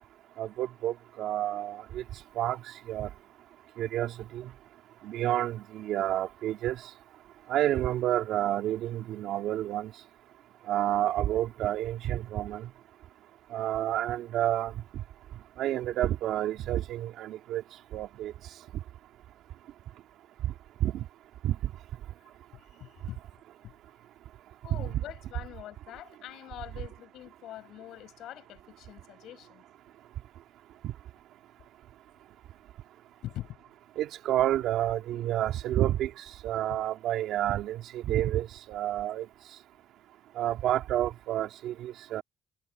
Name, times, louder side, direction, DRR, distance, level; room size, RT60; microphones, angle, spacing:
voice 1, 0.4-2.0 2.3-2.6 2.9-3.1 3.8-4.5 5.0-6.8 7.5-9.9 10.7-12.7 13.5-14.7 15.6-17.6 17.9-18.3 20.4-20.5 20.8-21.0 21.4-21.5 24.7-24.8 30.8-30.9 34.0-36.1 36.4-39.2 40.4-42.2, right 12 dB, 85° right, 3.3 m, -29 dB
voice 2, 22.2-23.2 23.6-23.8 24.6-29.6 33.2-33.6, left 13 dB, 85° left, 7.0 m, -44 dB
cardioid pair, 90°, 0 cm